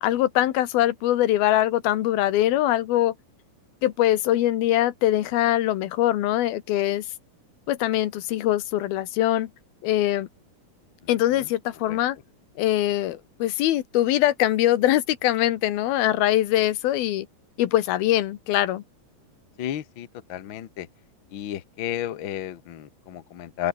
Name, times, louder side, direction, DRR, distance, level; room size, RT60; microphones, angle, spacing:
voice 1, 0.0-3.1 3.8-7.1 7.7-9.5 9.8-10.3 11.1-12.2 12.6-17.3 17.6-18.8, left 13 dB, 85° left, 3.2 m, -22 dB
voice 2, 19.6-20.9 21.3-23.7, left 11 dB, 65° left, 1.2 m, -33 dB
open air
omnidirectional pair, 4.2 m